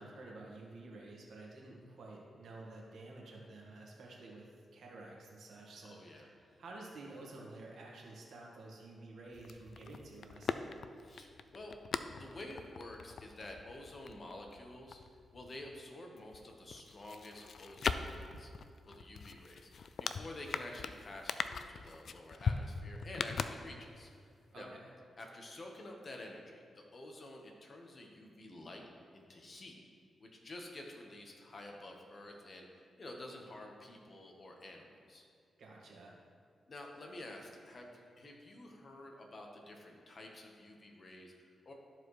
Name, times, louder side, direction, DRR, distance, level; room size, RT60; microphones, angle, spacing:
voice 1, 0.0-10.5 24.5-24.9 35.6-36.2, right 2 dB, 75° right, -2 dB, 1.6 m, -51 dB
voice 2, 5.8-6.3 11.0-11.7 12.1-15.0 15.3-18.5 18.9-24.1 24.5-24.7 25.2-28.9 29.1-29.8 30.2-35.2 36.7-41.7, left 1 dB, 45° left, 1 dB, 1.2 m, -50 dB
sound 1, 9.3-15.8 16.2-24.1 24.4-24.5, left 5 dB, 65° left, 0.3 m, -41 dB
13.0 x 4.7 x 3.3 m, 2.2 s
cardioid pair, 75°, 0 cm